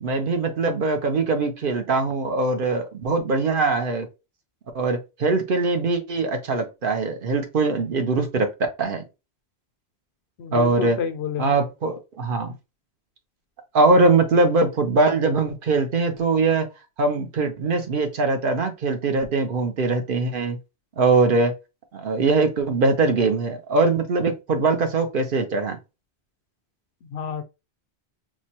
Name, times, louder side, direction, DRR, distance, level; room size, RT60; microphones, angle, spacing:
voice 1, 0.0-4.1 4.7-8.5 8.8-9.0 10.5-11.0 11.4-12.6 13.7-16.7 17.0-20.6 21.0-21.5 21.9-25.8, right 3 dB, 55° right, 0.9 m, -22 dB
voice 2, 10.4-11.5 14.0-14.1 27.0-27.4, left 7 dB, 80° left, 0.8 m, -29 dB
4.6 x 2.2 x 2.8 m
omnidirectional pair, 1.1 m